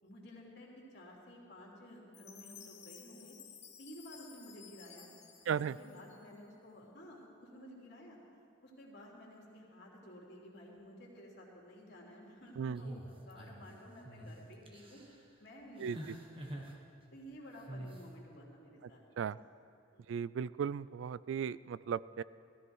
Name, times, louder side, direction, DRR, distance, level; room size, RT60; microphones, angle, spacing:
voice 1, 0.0-3.4 3.8-5.1 5.4-8.2 8.6-15.0 15.4-16.7 17.1-19.0 19.9-20.1, equal, 60° left, -2 dB, 3.1 m, -53 dB
Chime, 2.1-6.5, left 7 dB, 35° left, 1.3 m, -55 dB
voice 2, 5.5-5.8 12.6-12.8 15.8-16.0 19.2-19.4 20.1-22.2, right 7 dB, 75° right, 19 dB, 0.3 m, -36 dB
sound 1, 12.7-13.7 14.0-14.3 14.7-15.1 15.8-16.7 17.7-18.0, right 1 dB, 30° right, 1.4 m, -46 dB
17.5 x 14.0 x 4.7 m, 2.4 s
head